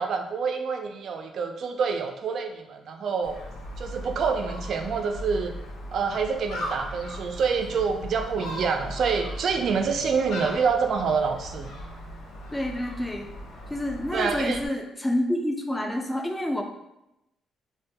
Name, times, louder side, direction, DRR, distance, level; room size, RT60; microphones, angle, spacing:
voice 1, 0.0-3.4 3.8-5.5 5.9-11.7 14.1-14.6, right 5 dB, 60° right, 4 dB, 0.3 m, -27 dB
Gull seagull, 3.2-14.7, left 1 dB, 85° left, 0.5 m, -38 dB
voice 2, 12.5-13.3 13.7-16.6, left 1 dB, 10° left, 2 dB, 0.4 m, -28 dB
2.2 x 2.2 x 2.7 m, 0.90 s
cardioid pair, 90°, 0 cm